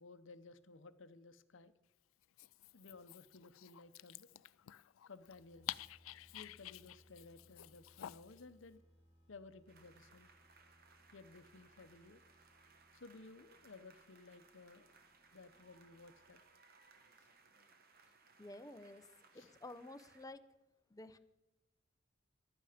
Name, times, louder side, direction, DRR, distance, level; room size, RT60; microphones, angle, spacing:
voice 1, 0.0-1.7 2.7-4.3 5.1-5.8 6.3-8.8 9.3-10.3 11.1-12.2 12.9-14.9 15.3-16.4 17.2-17.3 19.3-19.5, left 3 dB, 70° left, 12 dB, 0.8 m, -57 dB
Dog, 2.2-8.4, left 13 dB, 85° left, 0.4 m, -51 dB
sound 1, 5.2-16.6, equal, 20° right, 4.8 m, -70 dB
sound 2, 9.7-20.2, right 4 dB, 50° right, 1.6 m, -66 dB
voice 2, 18.4-19.1 19.3-20.4 20.9-21.2, left 2 dB, 15° left, 10 dB, 0.7 m, -51 dB
15.0 x 12.0 x 5.1 m, 1.1 s
head